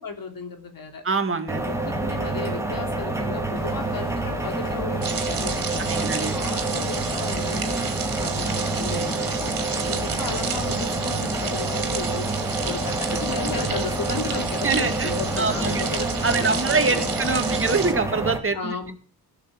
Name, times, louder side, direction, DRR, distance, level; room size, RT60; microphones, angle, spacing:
voice 1, 0.0-1.0 1.5-7.8 8.2-12.3 12.6-16.0 16.3-17.1 17.4-17.6 18.5-18.9, left 5 dB, 60° left, 5 dB, 3.3 m, -35 dB
voice 2, 1.0-1.6 5.8-6.4 14.6-15.1 15.4-15.8 16.2-18.9, right 4 dB, 35° right, 6 dB, 2.3 m, -24 dB
sound 1, 1.5-18.4, right 2 dB, 5° right, 2.6 m, -28 dB
sound 2, 3.5-16.4, left 3 dB, 45° left, 3.7 m, -41 dB
sound 3, 5.0-17.9, right 6 dB, 60° right, 3.2 m, -32 dB
17.0 x 6.7 x 8.7 m, 0.42 s
wide cardioid pair, 130°, 38 cm